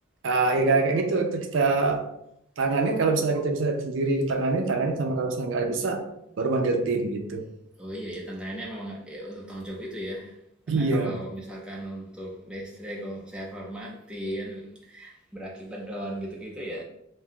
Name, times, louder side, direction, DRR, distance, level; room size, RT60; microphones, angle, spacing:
voice 1, 0.2-2.0 2.6-6.1 6.4-7.4 10.7-11.1, right 3 dB, 65° right, 4 dB, 0.4 m, -24 dB
voice 2, 7.8-10.4 10.7-16.8, equal, 5° right, -3 dB, 0.4 m, -37 dB
2.6 x 2.2 x 3.6 m, 0.78 s
head